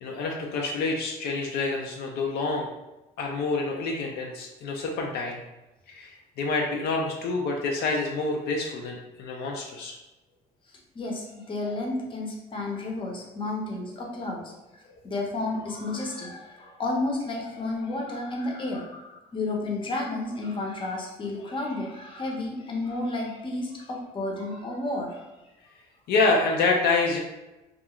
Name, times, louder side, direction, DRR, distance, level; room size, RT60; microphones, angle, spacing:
voice 1, 0.0-2.7 3.2-5.4 5.9-9.9 26.1-27.2, left 3 dB, 75° left, 0 dB, 0.4 m, -27 dB
voice 2, 10.9-14.5 15.0-25.3, left 2 dB, 30° left, -1 dB, 0.6 m, -31 dB
2.4 x 2.3 x 2.9 m, 1.0 s
cardioid pair, 110°, 17 cm